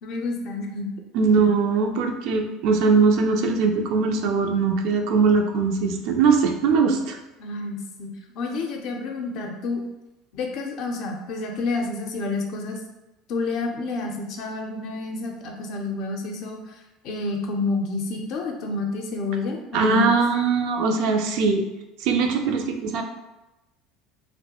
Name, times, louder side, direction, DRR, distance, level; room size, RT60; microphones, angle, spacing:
voice 1, 0.0-0.9 7.4-8.1 8.3-9.8 10.3-12.8 13.3-16.8 17.0-20.1, left 3 dB, 60° left, 2 dB, 0.4 m, -29 dB
voice 2, 1.1-7.2 19.7-21.6 22.0-23.0, right 4 dB, 65° right, 4 dB, 0.3 m, -21 dB
2.2 x 2.1 x 2.8 m, 1.0 s
hypercardioid pair, 80°, 0 cm